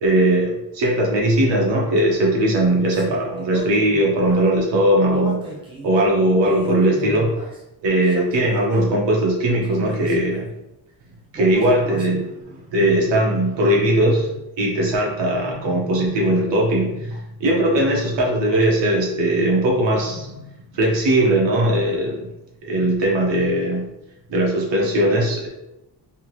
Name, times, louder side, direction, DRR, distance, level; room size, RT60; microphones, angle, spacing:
voice 1, 0.0-5.4 5.8-7.3 7.8-10.5 11.3-20.4 20.7-22.3 22.6-23.9 24.3-25.5, right 1 dB, 85° right, -2 dB, 1.2 m, -19 dB
sound 1, 2.9-4.5 5.1-5.9 6.4-7.6 8.0-8.8 9.6-10.4 11.3-12.4, right 1 dB, 10° right, 0.6 m, -35 dB
3.6 x 2.8 x 3.1 m, 0.90 s
cardioid pair, 135°, 42 cm